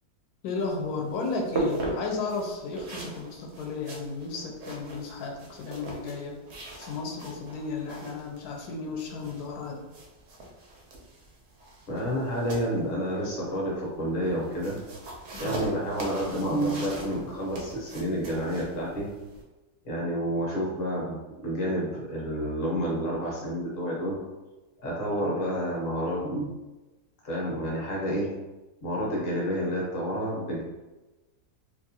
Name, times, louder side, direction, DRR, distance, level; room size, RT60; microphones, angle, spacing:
voice 1, 0.4-6.4 6.8-9.8 15.3-15.7 25.1-25.3, left 4 dB, 75° left, 1 dB, 1.0 m, -34 dB
sound 1, 0.6-19.4, right 2 dB, 70° right, 0.6 m, -39 dB
voice 2, 11.9-14.8 15.4-19.1 19.8-24.2 24.8-26.5 27.2-28.3 28.8-30.6, equal, 45° left, -4 dB, 0.9 m, -29 dB
2.8 x 2.4 x 2.7 m, 1.1 s
omnidirectional pair, 1.8 m